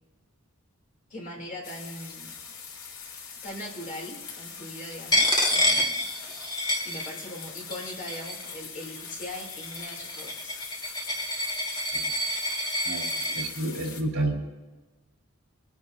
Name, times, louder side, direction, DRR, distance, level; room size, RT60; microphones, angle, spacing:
voice 1, 1.1-2.3 3.4-6.0 6.8-10.5, left 1 dB, 35° left, -2 dB, 2.7 m, -40 dB
sound 1, 1.6-14.0, left 6 dB, 90° left, 2.5 m, -42 dB
Coin (dropping), 5.1-7.4 7.7-8.5 9.2-13.4, left 1 dB, 20° left, 1.4 m, -28 dB
voice 2, 12.8-14.6, right 2 dB, 80° right, 0 dB, 3.1 m, -31 dB
25.0 x 9.9 x 2.6 m, 1.2 s
head